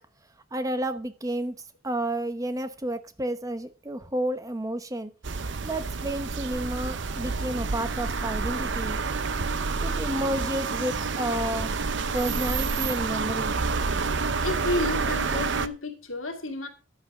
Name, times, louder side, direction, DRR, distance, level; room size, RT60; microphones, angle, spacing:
voice 1, 0.5-1.6 1.8-5.1 5.6-9.0 9.8-11.7 12.1-13.6, right 1 dB, 15° right, 0.9 m, -31 dB
sound 1, 5.2-15.7, right 4 dB, 60° right, 0.7 m, -28 dB
sound 2, 8.4-8.7 9.4-9.8 10.4-10.7 11.6-11.9 12.6-12.9 13.5-13.6 13.9-14.0, right 1 dB, 85° right, 1.7 m, -41 dB
voice 2, 14.4-16.7, left 2 dB, 85° left, 2.5 m, -31 dB
11.0 x 8.4 x 4.9 m
head